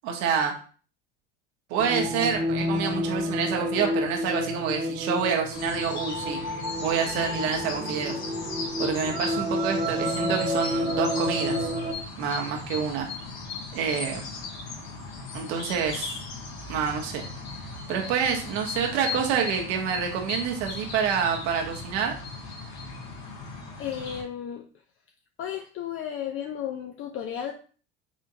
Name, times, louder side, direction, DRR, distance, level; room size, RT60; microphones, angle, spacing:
voice 1, 0.0-0.5 1.7-6.4 6.8-8.2 8.8-11.7 12.2-13.1 13.7-14.2 15.3-16.2 16.7-17.2 17.9-22.2, right 7 dB, 65° right, 1 dB, 1.1 m, -27 dB
sound 1, 1.8-11.9, equal, 25° right, 1.3 m, -30 dB
sound 2, 5.5-24.2, left 4 dB, 60° left, 1.5 m, -37 dB
voice 2, 23.8-24.6 25.4-27.5, left 9 dB, 45° left, 3 dB, 0.6 m, -33 dB
4.2 x 3.7 x 2.7 m, 0.40 s
hypercardioid pair, 85°, 31 cm